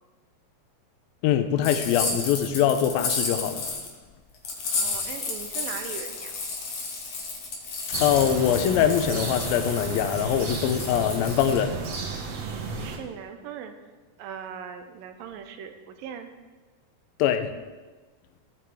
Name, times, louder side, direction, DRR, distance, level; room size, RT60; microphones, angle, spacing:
voice 1, 1.2-3.7 8.0-11.8 17.2-17.5, left 9 dB, 90° left, 9 dB, 2.5 m, -23 dB
sound 1, 1.6-3.9 4.4-11.9, left 4 dB, 55° left, 2.6 m, -32 dB
voice 2, 4.7-6.4 12.7-13.7 14.2-16.3, right 8 dB, 85° right, 7 dB, 2.4 m, -39 dB
sound 2, 7.9-13.0, right 4 dB, 60° right, 2.0 m, -33 dB
16.5 x 8.3 x 3.6 m, 1.3 s
omnidirectional pair, 4.1 m